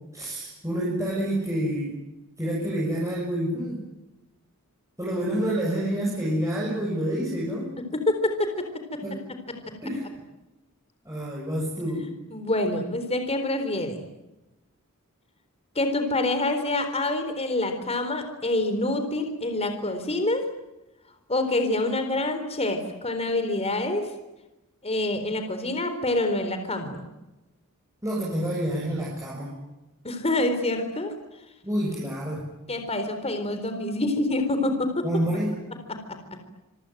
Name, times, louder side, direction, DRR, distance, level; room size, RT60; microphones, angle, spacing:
voice 1, 0.1-1.9 2.4-3.8 5.0-7.7 9.0-9.2 9.8-10.1 11.0-12.1 28.0-29.5 31.6-32.5 35.0-35.6, right 1 dB, 15° right, -4 dB, 7.4 m, -28 dB
voice 2, 7.9-9.0 12.3-14.0 15.8-20.4 21.3-24.1 24.8-27.1 30.0-31.1 32.7-35.0 35.9-36.2, left 2 dB, 30° left, 7 dB, 3.9 m, -26 dB
27.0 x 23.5 x 9.2 m, 1.0 s
head